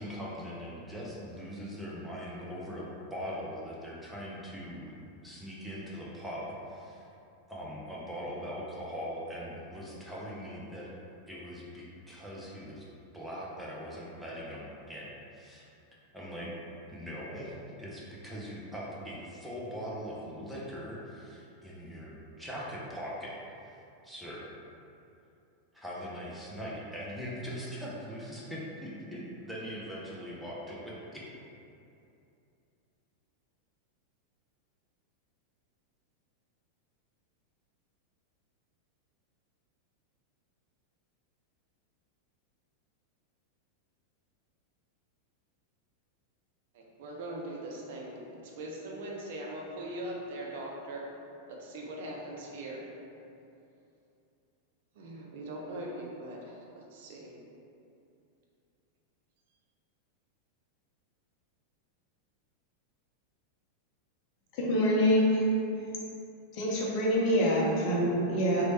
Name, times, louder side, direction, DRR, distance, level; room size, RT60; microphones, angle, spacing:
voice 1, 0.0-7.1 7.5-10.9 11.3-12.9 13.1-15.7 16.1-16.5 16.9-23.4 23.6-23.7 24.0-24.5 25.7-31.3, equal, ahead, -6 dB, 0.5 m, -41 dB
voice 2, 46.7-51.0 51.5-52.9 54.9-57.4, right 1 dB, 55° right, -1 dB, 0.4 m, -41 dB
voice 3, 64.5-65.4 66.5-68.6, equal, 40° left, -4 dB, 0.6 m, -25 dB
3.0 x 2.0 x 2.7 m, 2.6 s
figure-of-eight pair, 90°, 0 cm